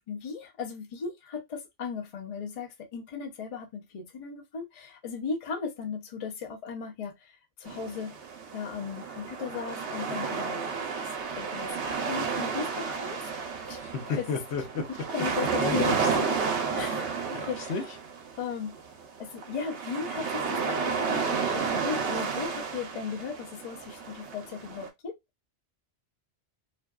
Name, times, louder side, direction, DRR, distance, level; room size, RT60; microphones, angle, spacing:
voice 1, 0.0-7.3 7.6-8.2 8.5-13.4 13.7-13.8 14.1-14.3 14.9-16.0 16.3-16.4 16.8-17.9 18.4-18.8 19.2-25.1, left 6 dB, 45° left, 0.5 m, -37 dB
sound 1, 7.6-24.9, right 5 dB, 75° right, 0.9 m, -32 dB
voice 2, 13.8-14.9 15.6-16.3 17.3-17.8, left 5 dB, 70° left, 0.8 m, -32 dB
2.5 x 2.2 x 2.3 m
omnidirectional pair, 1.2 m